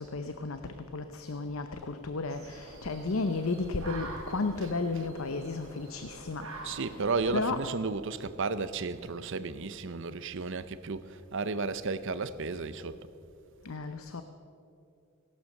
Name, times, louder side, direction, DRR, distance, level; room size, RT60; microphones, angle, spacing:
voice 1, 0.0-6.9 7.3-7.6 13.6-14.2, left 3 dB, 70° left, 0.7 m, -33 dB
sound 1, 2.3-7.8, right 2 dB, 75° right, 4.8 m, -46 dB
voice 2, 6.6-13.0, right 4 dB, 60° right, 0.7 m, -33 dB
17.5 x 12.0 x 6.6 m
head